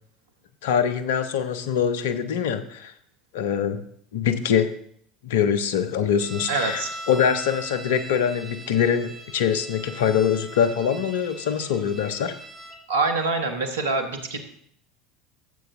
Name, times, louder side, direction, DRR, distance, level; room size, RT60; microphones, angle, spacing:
voice 1, 0.6-2.9 3.3-3.8 4.1-4.7 5.2-12.4, left 8 dB, 65° left, 11 dB, 0.7 m, -23 dB
sound 1, 6.2-12.8, right 1 dB, 20° right, 1.7 m, -40 dB
voice 2, 6.5-6.9 12.9-14.4, right 3 dB, 75° right, 5 dB, 1.2 m, -25 dB
14.0 x 7.8 x 2.6 m, 0.66 s
figure-of-eight pair, 70°, 0 cm